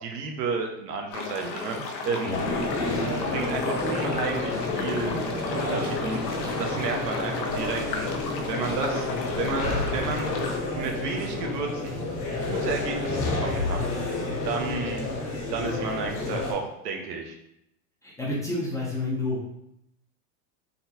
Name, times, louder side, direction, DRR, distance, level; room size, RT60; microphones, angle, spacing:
voice 1, 0.0-2.3 2.9-5.1 5.5-8.1 8.5-9.1 9.4-10.3 10.7-12.0 12.4-13.9 14.4-15.1 15.5-17.4, right 4 dB, 75° right, 2 dB, 0.8 m, -32 dB
sound 1, 1.1-10.6, left 4 dB, 85° left, 0.7 m, -35 dB
sound 2, 1.4-2.0 3.5-4.1 5.4-7.1 8.6-9.4 11.1-11.6 11.9-12.3 13.7-14.2, right 2 dB, 35° right, 0.9 m, -41 dB
sound 3, 2.3-16.5, left 2 dB, 70° left, 1.3 m, -29 dB
voice 2, 18.0-19.4, left 2 dB, 5° left, -7 dB, 0.5 m, -29 dB
3.8 x 2.2 x 2.7 m, 0.80 s
supercardioid pair, 120°, 49 cm